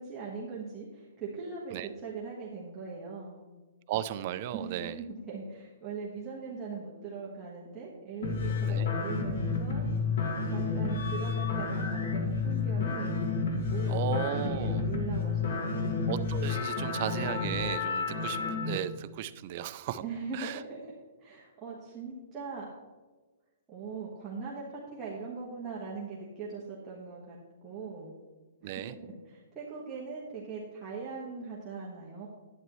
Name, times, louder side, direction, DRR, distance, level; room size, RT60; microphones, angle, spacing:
voice 1, 0.0-3.4 4.5-9.8 10.4-13.2 13.7-16.1 20.0-20.9 21.2-22.7 23.7-28.1 28.6-32.3, right 4 dB, 15° right, -7 dB, 1.4 m, -41 dB
voice 2, 3.9-5.0 8.6-8.9 13.9-14.9 16.1-18.4 18.6-20.0 20.3-20.6 28.6-29.0, right 10 dB, 40° right, 12 dB, 0.4 m, -35 dB
sound 1, 8.2-18.8, left 4 dB, 60° left, 1.7 m, -30 dB
11.0 x 9.2 x 3.1 m, 1.3 s
hypercardioid pair, 165°, 0 cm